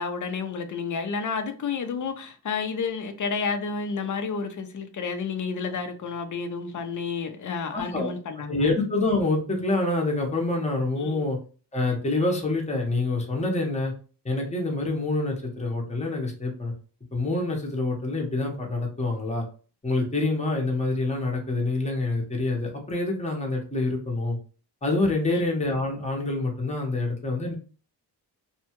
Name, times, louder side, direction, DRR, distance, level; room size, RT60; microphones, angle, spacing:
voice 1, 0.0-8.7 11.0-11.3 25.3-25.5, left 5 dB, 45° left, 0.6 m, -31 dB
voice 2, 7.7-8.1 8.5-11.4 11.7-13.9 14.2-16.7 17.1-19.4 19.8-24.4 24.8-27.5, left 2 dB, 15° left, 0.8 m, -26 dB
2.7 x 2.3 x 2.8 m
wide cardioid pair, 95°, 43 cm